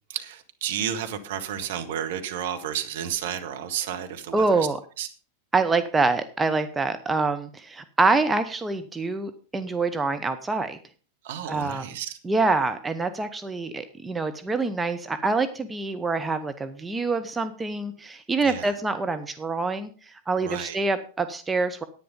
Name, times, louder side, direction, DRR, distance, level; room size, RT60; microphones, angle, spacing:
voice 1, 0.1-4.7 5.0-5.1 11.2-12.2 18.4-18.7 20.4-20.8, right 9 dB, 55° right, 6 dB, 1.5 m, -32 dB
voice 2, 4.3-4.8 5.5-10.8 11.5-11.9 12.2-19.9 20.3-21.8, right 3 dB, 15° right, 9 dB, 0.8 m, -25 dB
10.0 x 9.4 x 5.2 m, 0.37 s
figure-of-eight pair, 90°, 0 cm